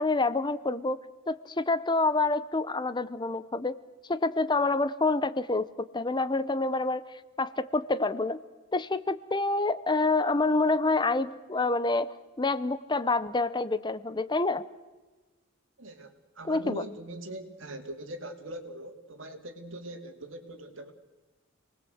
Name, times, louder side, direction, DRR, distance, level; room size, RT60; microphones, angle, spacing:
voice 1, 0.0-3.8 4.1-7.1 7.4-8.4 8.7-14.6 16.5-16.8, left 3 dB, 20° left, 15 dB, 0.7 m, -27 dB
voice 2, 15.8-20.9, right 1 dB, 65° right, 6 dB, 2.6 m, -41 dB
27.5 x 20.0 x 8.0 m, 1.2 s
head